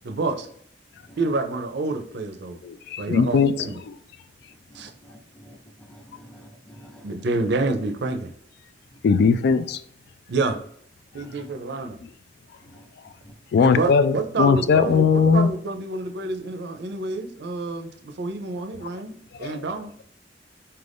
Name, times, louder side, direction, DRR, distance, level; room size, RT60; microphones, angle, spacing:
voice 1, 0.0-0.5 1.2-2.6 3.0-3.8 4.7-4.9 7.0-8.3 10.3-10.6 11.1-12.0 13.6-19.9, right 3 dB, 70° right, 0.5 m, -28 dB
voice 2, 2.6-3.6 9.0-9.8 13.5-15.5 19.4-19.6, left 5 dB, 60° left, 0.3 m, -19 dB
voice 3, 4.7-7.2 8.9-9.0 11.2-11.4 12.6-12.9 13.2-13.3, equal, 5° left, 0.6 m, -49 dB
4.4 x 2.5 x 3.4 m
head